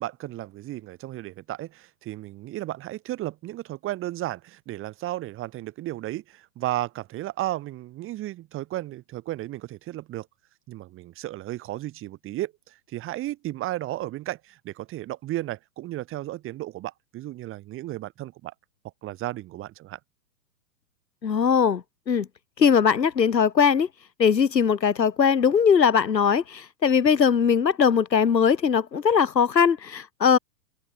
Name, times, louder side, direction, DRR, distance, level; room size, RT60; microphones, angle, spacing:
voice 1, 0.0-10.3 10.7-18.5 19.0-20.0, right 15 dB, 25° right, 2.8 m, -34 dB
voice 2, 21.2-22.3 22.6-23.9 24.2-30.4, left 7 dB, 90° left, 1.2 m, -20 dB
hypercardioid pair, 120°, 49 cm